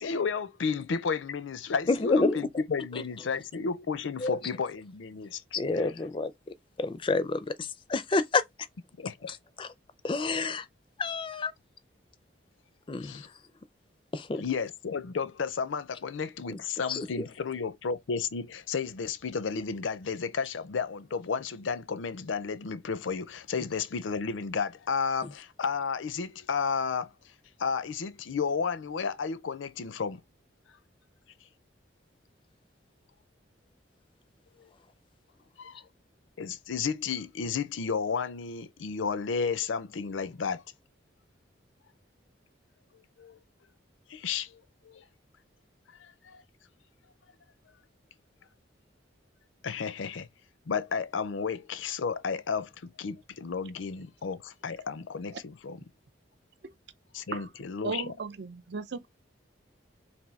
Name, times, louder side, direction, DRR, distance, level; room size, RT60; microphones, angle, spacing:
voice 1, 0.0-2.2 2.7-5.4 9.0-9.3 13.0-13.2 14.4-27.1 27.6-30.2 35.6-35.8 36.4-40.6 43.2-43.4 44.1-44.5 44.8-45.0 46.2-46.4 49.6-50.3 50.7-55.8 57.1-58.0, left 5 dB, 80° left, 0.5 m, -32 dB
voice 2, 1.9-2.6 2.9-3.1 4.2-4.5 5.5-8.4 9.3-9.7 10.0-10.7 11.0-11.5 12.9-13.4 14.1-14.4 16.5-16.6 16.9-17.3 25.2-25.3, left 3 dB, 25° left, 0.4 m, -29 dB
voice 3, 57.8-59.1, right 4 dB, 60° right, 0.5 m, -36 dB
3.5 x 2.6 x 4.0 m
head